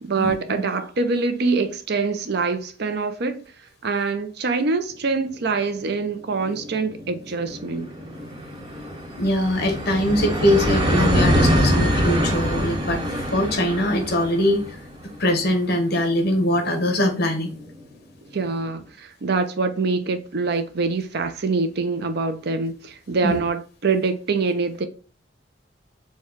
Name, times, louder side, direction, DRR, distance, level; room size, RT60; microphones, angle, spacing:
voice 1, 0.0-3.4 3.8-7.9 18.3-24.9, right 4 dB, 60° right, 0.6 m, -24 dB
sound 1, 5.5-5.6 5.9-6.0 6.2-17.7, equal, 25° right, 1.1 m, -25 dB
voice 2, 9.2-14.8 15.2-17.5 23.2-23.4, left 1 dB, 55° left, 1.0 m, -22 dB
4.6 x 2.3 x 4.5 m
head